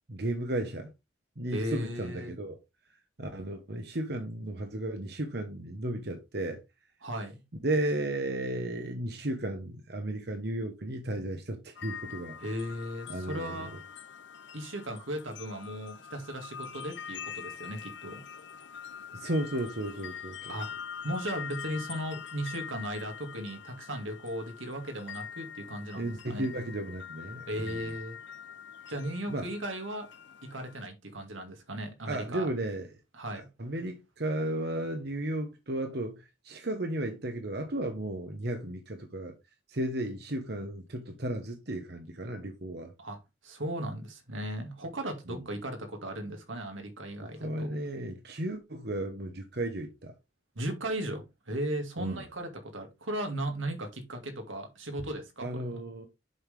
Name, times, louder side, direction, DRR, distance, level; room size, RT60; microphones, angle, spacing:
voice 1, 0.1-0.9 1.4-2.6 3.2-6.6 7.6-12.4 13.1-13.7 19.1-20.6 25.9-27.9 29.3-29.5 32.1-33.0 33.6-39.3 39.7-42.9 45.3-45.4 47.2-50.1 52.0-52.2 55.4-56.1, right 1 dB, 55° right, 1.2 m, -34 dB
voice 2, 1.5-2.4 7.0-7.4 12.4-13.8 14.5-18.2 20.5-20.7 21.0-26.5 27.5-28.2 28.9-30.1 30.4-32.5 33.1-33.5 43.0-43.2 43.4-47.7 50.6-55.6, right 1 dB, 80° right, 2.2 m, -36 dB
sound 1, 11.8-30.8, left 8 dB, 65° left, 0.7 m, -44 dB
7.9 x 5.7 x 3.5 m
head